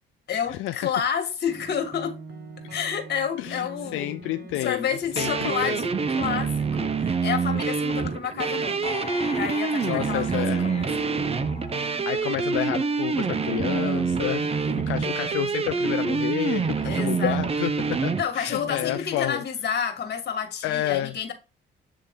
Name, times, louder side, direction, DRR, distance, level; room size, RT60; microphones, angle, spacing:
voice 1, 0.3-2.2 2.7-4.2 4.6-8.8 9.3-10.9 14.4-14.8 16.8-17.4 18.2-21.3, left 7 dB, 55° left, 2.1 m, -30 dB
sound 1, 1.5-19.2, right 2 dB, 55° right, 1.8 m, -42 dB
voice 2, 3.4-4.9 5.2-5.8 9.8-10.9 12.1-19.4 20.6-21.1, left 14 dB, 85° left, 0.4 m, -30 dB
sound 2, 5.2-18.2, right 5 dB, 30° right, 0.7 m, -26 dB
sound 3, 8.8-12.3 12.8-12.9, left 4 dB, 30° left, 1.1 m, -39 dB
8.5 x 3.2 x 3.7 m
cardioid pair, 90°, 20 cm